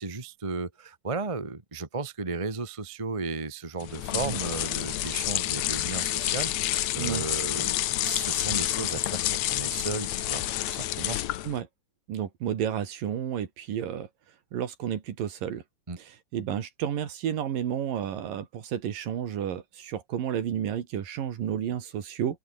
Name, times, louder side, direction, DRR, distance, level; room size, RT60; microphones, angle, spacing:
voice 1, 0.0-11.2 15.9-16.0, right 3 dB, 25° right, 0.7 m, -35 dB
sound 1, 3.8-11.6, left 14 dB, 75° left, 1.6 m, -29 dB
voice 2, 7.0-7.3 11.4-11.7 12.1-14.1 14.5-15.6 16.0-22.4, right 9 dB, 70° right, 3.7 m, -31 dB
open air
omnidirectional pair, 4.2 m